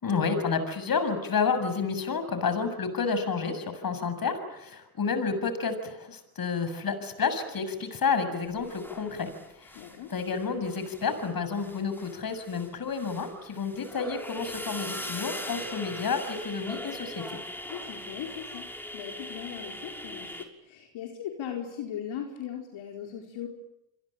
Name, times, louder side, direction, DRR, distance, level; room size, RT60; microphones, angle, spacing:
voice 1, 0.0-17.4, left 5 dB, 45° left, 10 dB, 7.3 m, -30 dB
sound 1, 8.6-10.4 10.7-20.4, left 1 dB, 5° left, 6.0 m, -41 dB
voice 2, 9.7-10.1 17.7-18.7 18.9-20.3 20.6-23.5, left 9 dB, 70° left, 2 dB, 4.8 m, -38 dB
29.0 x 22.5 x 8.9 m, 0.87 s
supercardioid pair, 65°, 48 cm